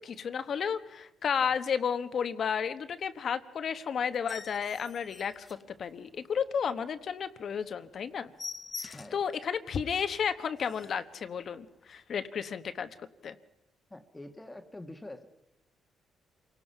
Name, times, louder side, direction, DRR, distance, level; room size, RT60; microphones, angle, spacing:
voice 1, 0.0-8.3 8.8-12.9 13.2-13.4, left 7 dB, 55° left, 11 dB, 1.1 m, -32 dB
sound 1, 4.1-6.3 6.7-6.8 7.2-7.3 7.6-7.7 8.0-9.3 9.8-9.9 10.3-10.4 10.6-11.1 11.8-12.0, left 4 dB, 30° left, 0.8 m, -45 dB
voice 2, 13.9-15.3, left 1 dB, 15° left, 6 dB, 1.5 m, -45 dB
28.0 x 18.5 x 5.6 m, 0.85 s
cardioid pair, 90°, 0 cm